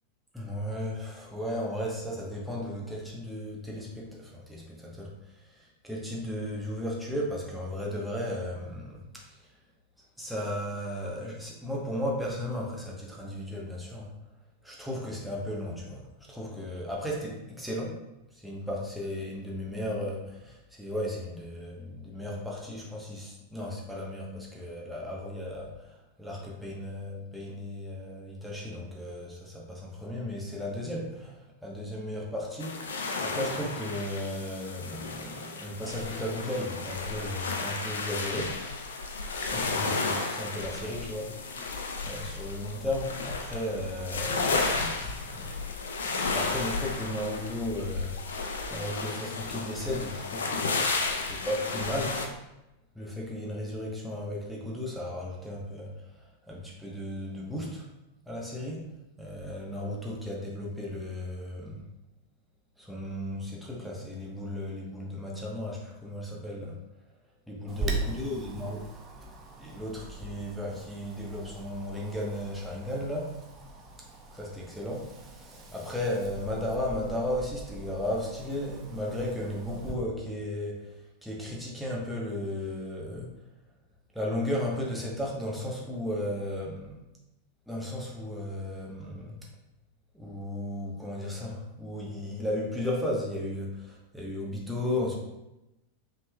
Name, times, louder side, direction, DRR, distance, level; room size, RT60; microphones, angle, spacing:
voice 1, 0.3-9.5 10.2-14.1 14.6-18.0 18.3-32.8 33.2-38.6 39.3-45.6 46.2-52.2 52.9-57.9 58.3-58.9 59.2-61.8 62.8-66.8 67.5-68.9 69.6-73.3 74.3-83.4 84.1-87.0 87.7-89.4 90.1-95.1, left 1 dB, ahead, -4 dB, 1.0 m, -35 dB
sound 1, 32.6-52.3, left 3 dB, 65° left, 0.5 m, -33 dB
Wind, 67.7-79.9, right 2 dB, 25° right, 0.7 m, -41 dB
5.4 x 3.5 x 2.2 m, 0.94 s
figure-of-eight pair, 90°, 0 cm